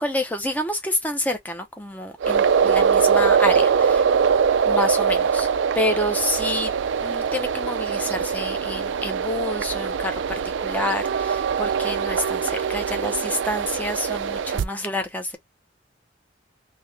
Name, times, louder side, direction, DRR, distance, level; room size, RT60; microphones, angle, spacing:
voice 1, 0.0-4.0 4.7-5.5 5.7-15.4, left 1 dB, 10° left, 0.7 m, -28 dB
sound 1, 2.2-14.6, right 6 dB, 80° right, 0.4 m, -22 dB
3.2 x 2.8 x 3.3 m
head